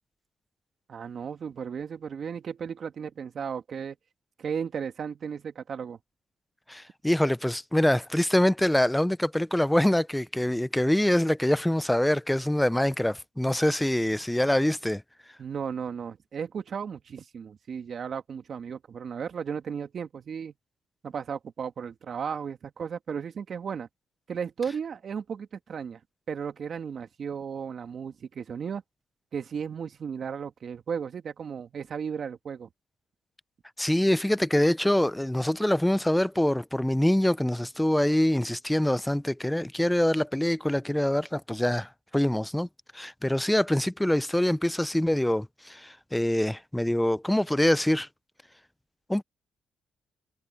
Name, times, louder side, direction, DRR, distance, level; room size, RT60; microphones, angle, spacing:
voice 1, 0.9-4.0 4.4-6.0 15.4-20.5 21.0-23.9 24.3-26.0 26.3-28.8 29.3-32.7, right 7 dB, 50° right, 2.1 m, -35 dB
voice 2, 6.7-15.0 33.8-42.7 42.9-48.1 49.1-49.2, left 1 dB, 5° left, 0.6 m, -25 dB
cardioid pair, 90°, 0 cm